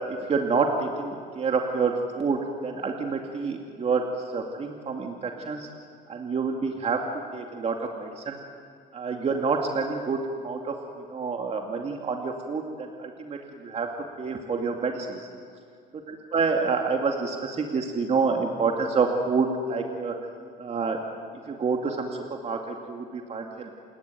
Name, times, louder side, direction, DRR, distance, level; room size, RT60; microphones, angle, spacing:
voice 1, 0.3-4.1 4.3-5.7 6.1-8.4 8.9-10.7 11.1-13.9 14.2-15.2 16.1-20.1 20.6-21.0 21.5-23.7, right 4 dB, 40° right, 2 dB, 2.4 m, -28 dB
29.0 x 20.0 x 9.4 m, 2.2 s
cardioid pair, 110°, 17 cm